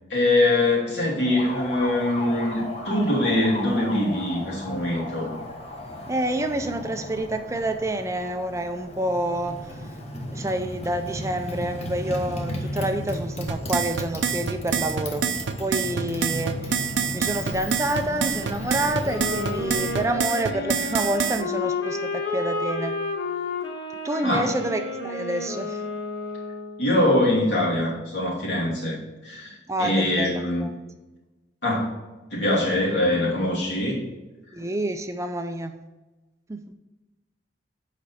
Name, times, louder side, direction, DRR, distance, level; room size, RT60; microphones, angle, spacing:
voice 1, 0.1-5.3 24.2-24.5 26.8-30.7 31.6-32.0 32.3-34.0, left 1 dB, 70° left, -4 dB, 2.7 m, -23 dB
Motorcycle, 1.2-20.2, left 1 dB, 35° left, 1.2 m, -35 dB
voice 2, 6.1-9.8 10.3-15.3 15.6-23.0 24.0-25.8 29.7-30.7 34.5-35.7 36.5-36.6, right 1 dB, 15° right, 7 dB, 0.4 m, -28 dB
sound 1, 13.5-21.4, right 6 dB, 75° right, 0.6 m, -26 dB
sound 2, 19.0-26.9, left 3 dB, 85° left, 1.4 m, -31 dB
8.4 x 5.1 x 4.2 m, 1.1 s
head